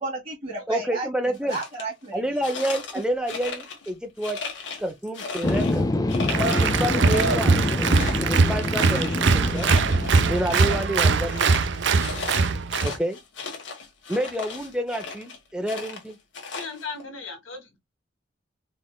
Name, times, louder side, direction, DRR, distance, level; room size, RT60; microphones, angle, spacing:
voice 1, 0.0-2.4, right 3 dB, 30° right, 2.3 m, -33 dB
voice 2, 0.7-1.6 2.1-4.4 4.8-6.1 6.4-7.8 8.2-9.7 10.3-11.5 12.8-13.2 14.1-16.2, right 1 dB, 5° right, 0.7 m, -29 dB
sound 1, 1.3-1.8 2.4-3.9 4.2-5.8 6.1-6.7 7.0-10.9 11.2-15.4 15.7-17.0, left 4 dB, 65° left, 1.3 m, -36 dB
sound 2, 5.4-10.8, left 2 dB, 20° left, 0.4 m, -26 dB
Applause, 6.3-13.0, right 4 dB, 65° right, 0.5 m, -22 dB
voice 3, 16.5-17.8, left 4 dB, 85° left, 1.5 m, -37 dB
4.2 x 3.4 x 2.3 m
head